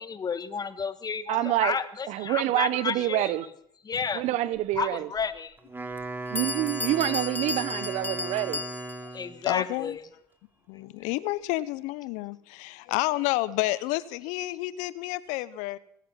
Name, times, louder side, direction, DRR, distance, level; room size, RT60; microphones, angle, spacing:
voice 1, 0.0-3.4 3.8-4.2 4.8-5.6 9.1-10.0, left 6 dB, 30° left, 12 dB, 1.6 m, -31 dB
voice 2, 1.3-1.8 2.1-3.5 4.1-5.1 6.3-8.6, right 14 dB, 60° right, 16 dB, 1.1 m, -27 dB
Bell, 5.2-5.3 6.0-6.1 6.4-9.2, left 4 dB, 15° left, 1.4 m, -34 dB
Wind instrument woodwind instrument, 5.6-9.4, right 2 dB, 15° right, 2.6 m, -37 dB
voice 3, 9.4-10.0 10.7-15.8, left 18 dB, 70° left, 18 dB, 0.7 m, -30 dB
21.0 x 11.0 x 5.7 m, 0.71 s
hypercardioid pair, 75°, 13 cm